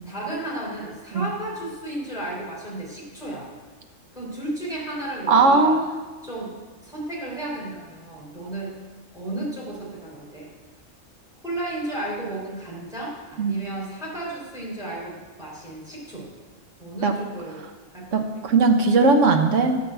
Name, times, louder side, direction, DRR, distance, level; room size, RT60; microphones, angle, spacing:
voice 1, 0.1-3.4 4.1-5.8 6.2-6.5 6.8-8.7 9.1-10.5 11.4-16.3 16.8-17.6 17.9-18.1, right 1 dB, 5° right, -7 dB, 3.9 m, -33 dB
voice 2, 5.3-6.0 13.4-13.6 17.0-17.1 18.1-19.8, right 3 dB, 70° right, 5 dB, 1.3 m, -18 dB
10.5 x 5.4 x 7.8 m, 1.3 s
omnidirectional pair, 1.4 m